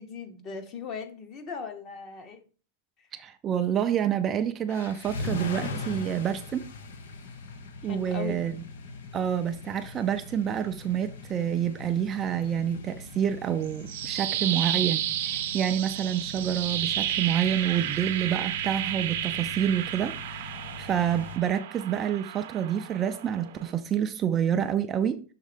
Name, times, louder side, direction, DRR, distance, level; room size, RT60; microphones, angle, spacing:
voice 1, 0.0-2.4 7.8-8.4, left 5 dB, 25° left, 0.8 m, -38 dB
voice 2, 3.1-6.6 7.8-8.6 9.1-25.2, right 9 dB, 20° right, 0.4 m, -28 dB
sound 1, 4.7-21.4, left 3 dB, 90° left, 1.0 m, -41 dB
sound 2, 13.6-23.7, right 12 dB, 60° right, 0.7 m, -32 dB
6.4 x 3.7 x 5.0 m
supercardioid pair, 165°, 0 cm